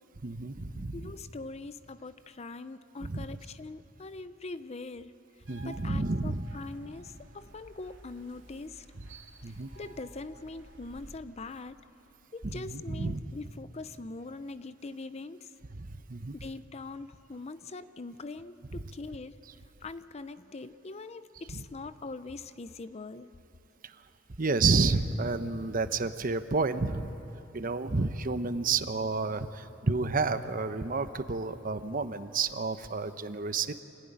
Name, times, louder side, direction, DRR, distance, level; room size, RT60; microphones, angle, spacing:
voice 1, 0.2-1.0 3.0-3.2 5.5-6.5 9.4-9.7 12.4-13.2 15.8-16.4 24.4-27.1 27.5-33.8, right 3 dB, 45° right, 11 dB, 0.8 m, -30 dB
voice 2, 0.9-5.1 5.6-8.9 9.5-11.8 12.3-15.5 16.4-19.4 19.8-23.3, left 3 dB, 35° left, 13 dB, 0.6 m, -42 dB
sound 1, 5.5-11.2, right 2 dB, 90° right, 2.6 m, -53 dB
26.5 x 15.5 x 10.0 m, 2.8 s
head